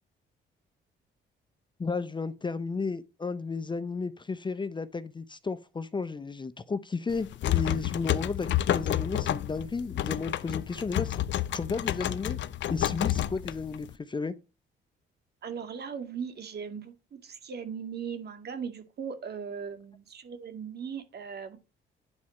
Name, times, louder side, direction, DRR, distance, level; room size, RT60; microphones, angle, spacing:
voice 1, 1.8-11.2 11.5-12.4 12.7-14.3, left 4 dB, 25° left, 0.7 m, -33 dB
sound 1, 7.1-13.9, left 12 dB, 65° left, 0.6 m, -30 dB
voice 2, 15.4-21.6, right 6 dB, 55° right, 2.1 m, -38 dB
9.8 x 4.2 x 6.4 m
cardioid pair, 90°, 20 cm